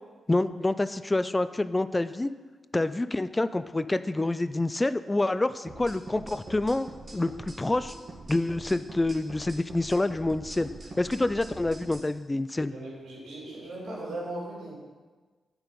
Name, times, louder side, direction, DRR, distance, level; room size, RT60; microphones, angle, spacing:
voice 1, 0.3-2.3 2.7-7.9 8.3-10.7 11.0-12.7, left 2 dB, 25° left, 13 dB, 0.4 m, -27 dB
sound 1, 5.7-12.0, right 2 dB, 45° right, 2.1 m, -43 dB
voice 2, 12.7-14.7, right 1 dB, 80° right, -6 dB, 2.9 m, -38 dB
9.1 x 4.8 x 5.2 m, 1.4 s
supercardioid pair, 45°, 0 cm